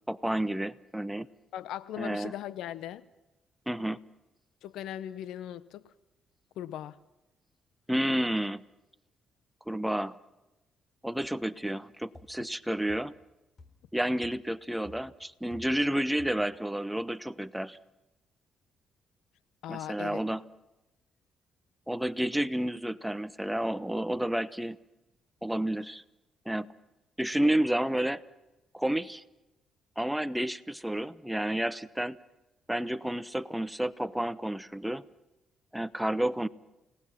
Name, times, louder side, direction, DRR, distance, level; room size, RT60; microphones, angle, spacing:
voice 1, 0.1-1.3 2.0-2.3 3.7-4.0 7.9-8.6 9.7-10.2 11.0-13.1 13.9-17.8 19.7-20.4 21.9-24.8 25.4-26.0 26.5-26.7 27.2-28.2 28.7-29.2 30.0-32.2 32.7-35.0 35.7-36.5, right 1 dB, 5° right, 0.9 m, -30 dB
voice 2, 1.5-3.0 4.6-5.9 6.6-7.0 19.6-20.2, left 11 dB, 85° left, 0.9 m, -39 dB
sound 1, 11.2-11.4 12.1-12.4 12.9-13.2 13.6-13.9 14.2-14.5 14.8-15.9 16.2-16.6, left 2 dB, 45° left, 4.2 m, -53 dB
30.0 x 18.0 x 5.9 m
cardioid pair, 90°, 0 cm